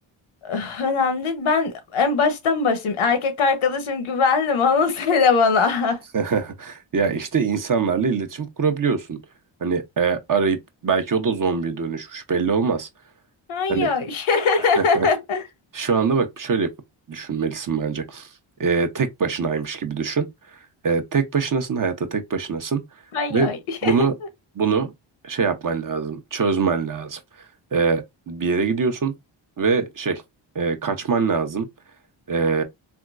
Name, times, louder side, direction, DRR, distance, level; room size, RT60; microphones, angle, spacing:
voice 1, 0.4-6.0 13.5-15.4 23.1-24.1, left 4 dB, 75° left, 0.9 m, -21 dB
voice 2, 6.1-9.2 9.6-10.6 10.8-12.9 13.7-13.9 14.8-15.1 15.7-16.7 17.1-18.3 18.6-20.3 20.8-22.8 23.3-23.5 23.8-24.1 24.6-24.9 25.2-27.2 27.7-29.1 29.6-30.2 30.5-31.7 32.3-32.6, right 5 dB, 40° right, 0.8 m, -23 dB
3.6 x 2.2 x 2.4 m
supercardioid pair, 45°, 49 cm